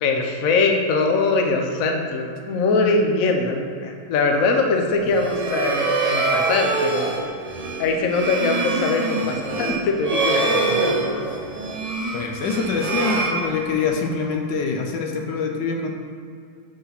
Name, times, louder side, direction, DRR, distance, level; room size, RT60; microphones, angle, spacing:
voice 1, 0.0-7.2 7.8-11.4, left 3 dB, 55° left, 2 dB, 1.1 m, -22 dB
sound 1, 5.0-14.1, right 3 dB, 55° right, 0.4 m, -25 dB
voice 2, 12.1-15.9, left 5 dB, 75° left, 3 dB, 1.3 m, -25 dB
6.2 x 5.6 x 5.9 m, 2.3 s
omnidirectional pair, 2.0 m